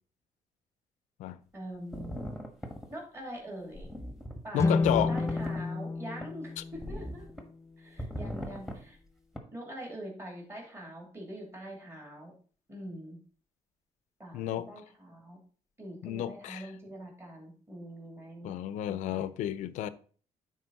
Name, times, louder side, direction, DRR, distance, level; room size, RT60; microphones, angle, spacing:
voice 1, 1.5-2.2 2.9-3.9 4.4-7.3 7.8-9.0 9.5-12.3 12.7-13.2 14.2-14.4 14.7-15.4 15.8-18.5 18.9-19.2, right 1 dB, 20° right, 2.9 m, -44 dB
sound 1, 1.9-2.9 3.7-4.4 4.8-5.6 6.2-6.3 6.7-7.4 8.0-8.8 9.3-9.4, equal, 5° right, 1.4 m, -39 dB
voice 2, 4.5-5.1 14.3-14.7 16.0-16.7 18.4-19.9, left 12 dB, 80° left, 0.5 m, -31 dB
sound 2, 4.5-7.8, left 3 dB, 25° left, 0.4 m, -31 dB
9.3 x 4.1 x 4.1 m
cardioid pair, 95°, 12 cm